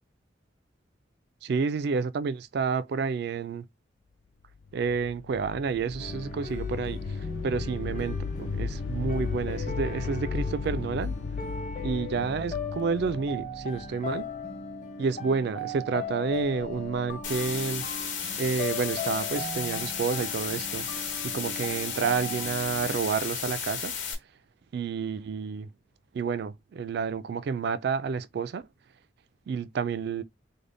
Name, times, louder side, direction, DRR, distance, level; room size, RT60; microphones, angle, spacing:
voice 1, 1.4-3.6 4.7-7.0 7.4-11.1 11.8-14.3 15.0-17.8 18.4-23.9 24.7-25.7 26.1-28.6 29.5-30.2, right 5 dB, 55° right, 0.3 m, -30 dB
sound 1, 4.6-14.5, left 5 dB, 65° left, 0.4 m, -35 dB
sound 2, 6.0-23.0, left 3 dB, 40° left, 0.9 m, -38 dB
sound 3, 17.2-24.1, left 7 dB, 80° left, 1.2 m, -34 dB
3.4 x 2.1 x 3.8 m
head